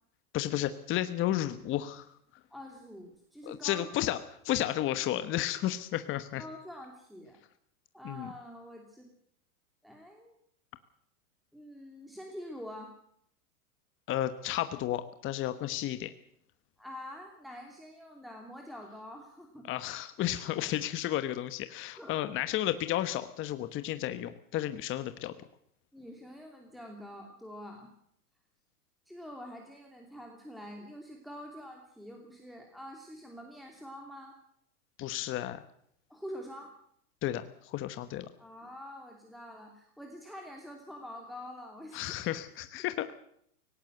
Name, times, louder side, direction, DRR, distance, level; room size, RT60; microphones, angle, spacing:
voice 1, 0.3-2.1 3.5-4.2 4.4-6.4 8.0-8.3 14.1-16.1 19.6-25.3 35.0-35.6 37.2-38.3 41.9-43.1, left 13 dB, 25° left, 10 dB, 1.2 m, -32 dB
voice 2, 2.5-3.9 6.4-7.4 7.9-9.1 9.8-10.3 11.5-12.9 16.8-19.7 22.0-22.3 25.9-27.9 29.1-34.4 36.1-36.8 38.4-42.1, equal, ahead, 1 dB, 2.8 m, -46 dB
18.5 x 18.0 x 7.9 m, 0.68 s
hypercardioid pair, 130°, 45 cm